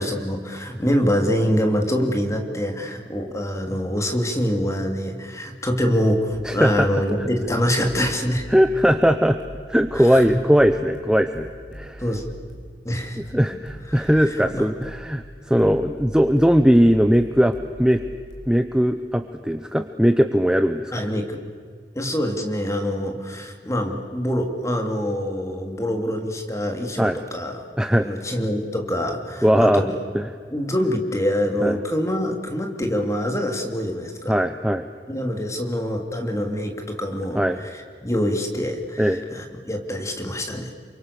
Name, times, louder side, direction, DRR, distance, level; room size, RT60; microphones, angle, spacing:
voice 1, 0.0-8.5 9.9-10.4 12.0-12.2 12.8-13.2 13.5-13.6 13.9-14.7 20.9-21.4 21.9-27.6 28.0-30.0 30.5-34.4 35.1-40.7, equal, 15° left, 4 dB, 3.0 m, -25 dB
sound 1, 6.3-18.7, equal, 85° left, 5.0 m, -42 dB
voice 2, 6.4-6.9 7.2-7.3 8.5-9.4 9.7-12.0 13.2-18.0 18.5-21.0 27.0-27.2 27.8-28.1 29.4-29.8 30.1-30.2 31.6-31.8 34.3-34.8 37.3-37.6 39.0-39.2, equal, 5° right, 8 dB, 0.8 m, -19 dB
28.5 x 24.5 x 6.9 m, 2.1 s
head